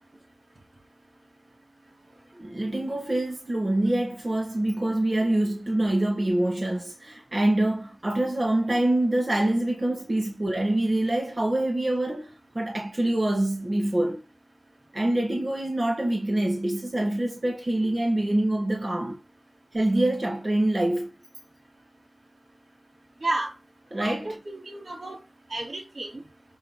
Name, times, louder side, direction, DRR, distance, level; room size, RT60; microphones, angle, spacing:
voice 1, 2.4-14.2 14.9-19.2 19.7-21.1 23.9-24.4, right 1 dB, 55° right, 2.5 m, -25 dB
voice 2, 23.2-23.5 24.0-25.2 25.5-26.2, right 2 dB, 85° right, 3.3 m, -32 dB
6.8 x 5.7 x 4.6 m
wide cardioid pair, 50°, 0 cm